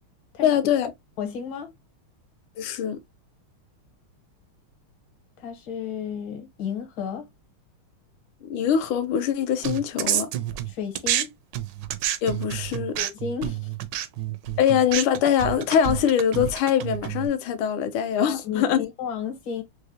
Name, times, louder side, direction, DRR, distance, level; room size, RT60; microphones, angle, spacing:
voice 1, 0.4-0.9 2.6-3.0 8.4-10.3 12.2-13.0 14.6-18.9, left 9 dB, 85° left, 1.5 m, -23 dB
voice 2, 1.2-1.7 5.4-7.3 10.7-11.3 13.0-13.7 18.2-19.6, left 7 dB, 70° left, 1.8 m, -32 dB
sound 1, 9.6-11.2 11.5-17.3, right 12 dB, 75° right, 1.0 m, -28 dB
4.7 x 2.1 x 2.6 m
omnidirectional pair, 2.3 m